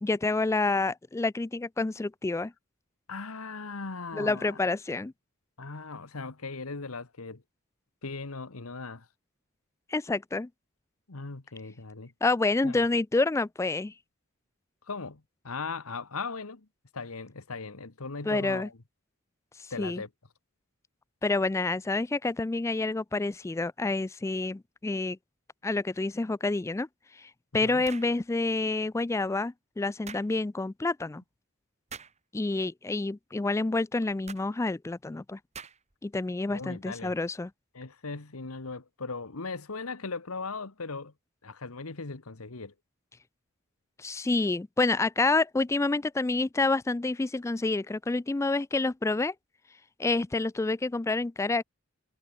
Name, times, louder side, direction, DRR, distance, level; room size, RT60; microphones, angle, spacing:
voice 1, 0.0-2.5 4.1-5.1 9.9-10.5 12.2-13.9 18.3-18.7 19.8-20.0 21.2-25.2 25.6-26.9 27.2-31.2 32.3-35.4 36.0-37.5 44.0-49.3 50.0-51.6, left 3 dB, 15° left, 0.3 m, -28 dB
voice 2, 3.1-4.6 5.6-7.4 8.0-9.1 11.1-12.1 12.6-12.8 14.9-16.7 16.9-18.7 19.7-20.1 27.6-27.9 36.5-37.1 37.7-41.1 41.4-42.7, left 4 dB, 80° left, 1.5 m, -38 dB
sound 1, 27.8-28.2 30.1-30.3 31.9-32.2 34.3-34.5 35.5-35.9, right 6 dB, 30° right, 2.2 m, -44 dB
head